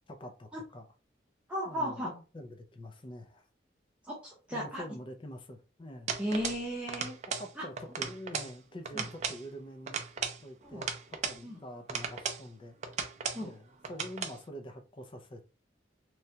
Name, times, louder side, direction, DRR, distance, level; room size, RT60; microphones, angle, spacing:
voice 1, 0.1-0.9 1.7-3.5 4.5-6.2 7.4-10.0 10.4-12.8 13.4-15.5, equal, 30° left, 0.4 m, -46 dB
voice 2, 1.5-2.1 4.0-4.8 6.2-7.1 7.6-7.7 8.9-9.1 10.6-10.9 11.4-11.6 13.3-13.5, equal, 5° right, 0.7 m, -35 dB
sound 1, 6.1-6.6 6.9-7.5 7.8-8.5 8.8-9.4 9.9-11.4 11.9-12.4 12.8-13.4 13.8-14.4, right 6 dB, 40° right, 0.4 m, -36 dB
3.1 x 2.2 x 2.7 m
head